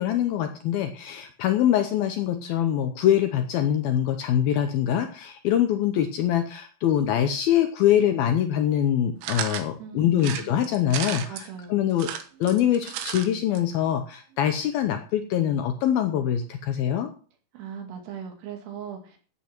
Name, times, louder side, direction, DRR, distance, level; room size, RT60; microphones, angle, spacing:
voice 1, 0.0-11.4 11.7-12.1 12.4-17.1, left 10 dB, 85° left, 7 dB, 2.1 m, -24 dB
sound 1, 9.2-9.7 10.2-11.5 11.9-13.3 13.6-13.7 13.9-14.0, right 10 dB, 85° right, 3.8 m, -33 dB
voice 2, 9.8-10.7 11.3-11.9 17.5-19.2, right 8 dB, 60° right, 3 dB, 4.4 m, -39 dB
15.5 x 8.6 x 4.5 m, 0.41 s
omnidirectional pair, 5.5 m